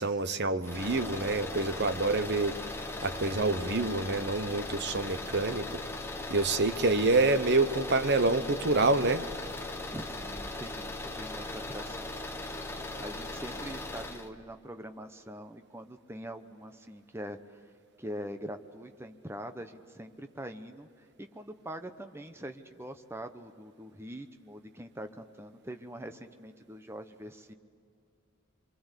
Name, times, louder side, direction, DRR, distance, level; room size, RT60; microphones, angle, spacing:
voice 1, 0.0-2.6 3.0-5.7 6.3-9.2, right 3 dB, 50° right, 11 dB, 1.0 m, -27 dB
sound 1, 0.6-14.3, left 2 dB, 10° left, 1.1 m, -39 dB
voice 2, 9.6-12.2 13.0-17.6 18.0-27.5, equal, 10° right, 8 dB, 0.9 m, -43 dB
26.0 x 24.0 x 8.3 m, 2.5 s
head